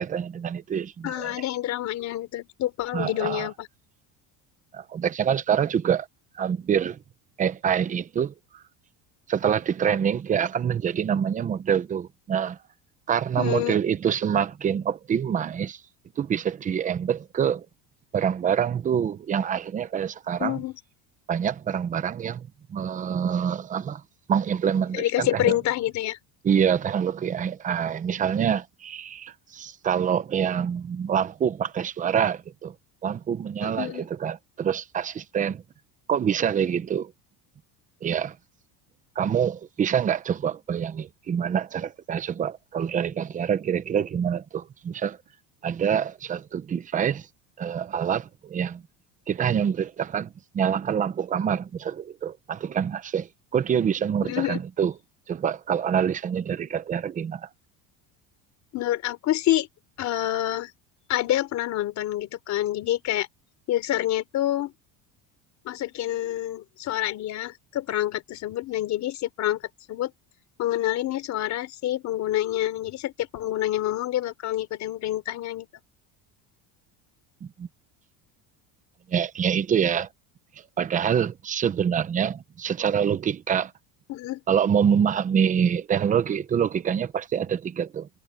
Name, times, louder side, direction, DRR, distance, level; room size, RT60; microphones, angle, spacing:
voice 1, 0.0-1.3 2.9-3.5 4.7-6.1 6.4-7.0 7.4-8.6 9.3-12.6 13.1-15.8 16.2-17.7 18.1-20.6 21.3-24.0 24.3-25.6 26.4-32.7 33.0-35.6 36.1-37.1 38.0-38.4 39.2-45.2 45.6-47.3 47.6-48.8 49.3-54.9 55.3-57.5 77.4-77.7 79.1-80.1 80.8-83.7 84.5-88.1, right 8 dB, 20° right, 0.7 m, -26 dB
voice 2, 1.0-3.7 13.4-13.8 20.4-20.8 24.9-26.2 33.6-34.1 54.2-54.6 58.7-59.7 60.0-60.7 61.1-63.3 63.7-64.7 65.7-69.6 69.9-70.1 70.6-75.7 84.1-84.4, left 13 dB, 40° left, 3.8 m, -27 dB
cardioid pair, 180°, 42 cm